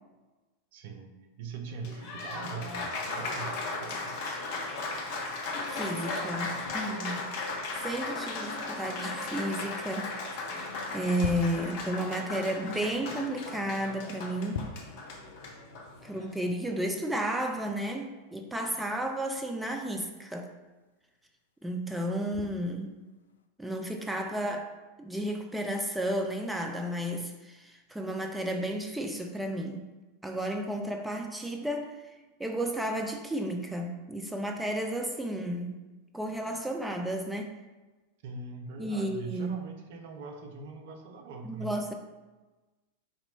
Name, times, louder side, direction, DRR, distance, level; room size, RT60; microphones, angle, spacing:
voice 1, 0.7-1.1 1.4-4.4 38.2-41.8, right 4 dB, 50° right, 4 dB, 0.5 m, -42 dB
Applause, 1.7-16.4, left 3 dB, 45° left, 0.9 m, -36 dB
sound 1, 5.5-23.5, left 6 dB, 70° left, 0.4 m, -48 dB
voice 2, 5.6-7.3 7.8-10.1 10.9-14.6 16.0-20.5 21.6-23.0 23.6-24.7 25.0-29.8 30.2-32.0 32.4-35.8 36.1-37.5 38.8-39.6 41.4-41.9, right 1 dB, 5° right, 3 dB, 0.4 m, -32 dB
4.3 x 2.9 x 4.1 m, 1.2 s
figure-of-eight pair, 90°, 0 cm